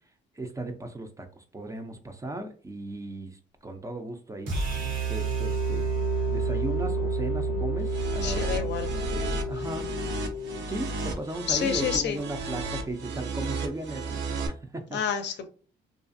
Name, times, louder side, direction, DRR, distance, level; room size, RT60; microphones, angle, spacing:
voice 1, 0.3-4.5 5.1-5.9 6.3-9.9 10.7-15.0, right 2 dB, 15° right, 6 dB, 0.4 m, -37 dB
sound 1, 4.5-10.6, right 3 dB, 85° right, 1.1 m, -29 dB
sound 2, 7.9-14.5, right 3 dB, 65° right, 0.6 m, -33 dB
voice 2, 8.2-8.9 11.5-12.2 14.9-15.5, left 8 dB, 60° left, 7 dB, 0.5 m, -28 dB
2.4 x 2.4 x 2.5 m, 0.39 s
cardioid pair, 90°, 20 cm